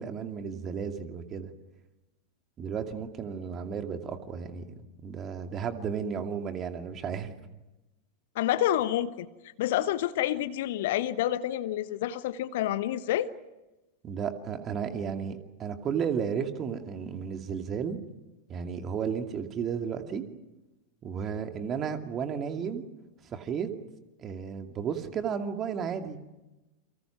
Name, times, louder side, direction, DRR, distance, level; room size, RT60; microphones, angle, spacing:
voice 1, 0.0-1.5 2.6-4.6 5.0-7.4 14.0-18.0 18.5-20.2 21.0-22.8 23.3-23.7 24.2-26.2, right 7 dB, 30° right, 6 dB, 2.4 m, -33 dB
voice 2, 8.3-9.3 9.6-13.3, left 12 dB, 55° left, 14 dB, 1.0 m, -28 dB
29.5 x 24.5 x 6.1 m, 1.1 s
figure-of-eight pair, 90°, 0 cm